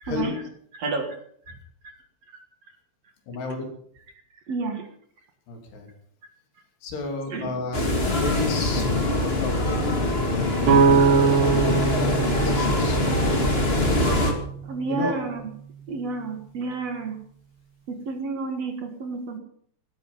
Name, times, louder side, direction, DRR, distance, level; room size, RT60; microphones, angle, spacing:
voice 1, 0.0-0.4 0.8-1.1 4.5-4.8 7.3-7.5 14.7-15.5 15.9-17.2 17.9-19.4, right 4 dB, 50° right, 5 dB, 2.2 m, -30 dB
voice 2, 3.3-3.7 5.5-5.9 6.8-10.7 11.6-13.0 14.8-15.2, left 4 dB, 80° left, 3 dB, 5.1 m, -32 dB
sound 1, 7.7-14.3, left 2 dB, 25° left, 1.4 m, -23 dB
sound 2, 10.7-14.5, right 5 dB, 85° right, 4.1 m, -22 dB
17.0 x 13.5 x 5.5 m, 0.63 s
omnidirectional pair, 4.7 m